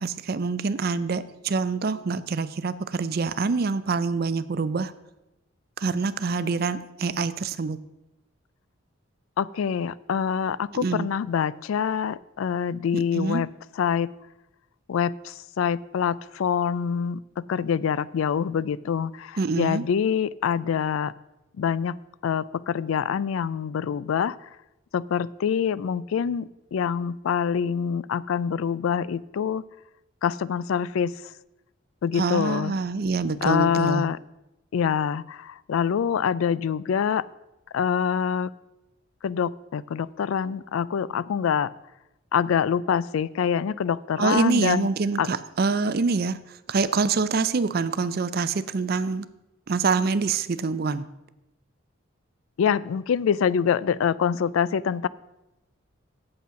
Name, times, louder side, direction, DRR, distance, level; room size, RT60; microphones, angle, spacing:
voice 1, 0.0-4.9 5.8-7.8 10.8-11.1 12.9-13.4 19.4-19.9 32.1-34.0 44.2-49.3 49.7-51.1, right 4 dB, 50° right, 14 dB, 0.5 m, -25 dB
voice 2, 9.4-13.5 13.8-14.1 14.9-21.1 21.6-22.0 22.2-24.4 24.9-29.6 30.2-31.1 32.0-32.7 33.4-34.2 34.7-37.3 37.7-38.5 39.2-41.7 42.3-44.9 45.2-45.3 52.6-55.1, left 7 dB, 80° left, 20 dB, 0.3 m, -25 dB
8.4 x 7.7 x 5.7 m, 0.94 s
head